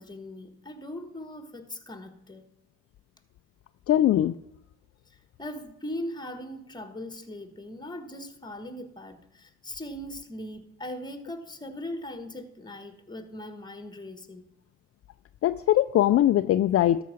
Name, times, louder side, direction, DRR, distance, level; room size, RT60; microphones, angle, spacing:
voice 1, 0.0-2.5 5.4-14.5, left 1 dB, 15° left, 9 dB, 1.4 m, -39 dB
voice 2, 3.9-4.4 15.4-17.0, left 12 dB, 50° left, 10 dB, 0.4 m, -21 dB
13.0 x 4.9 x 6.3 m, 0.82 s
cardioid pair, 90°, 30 cm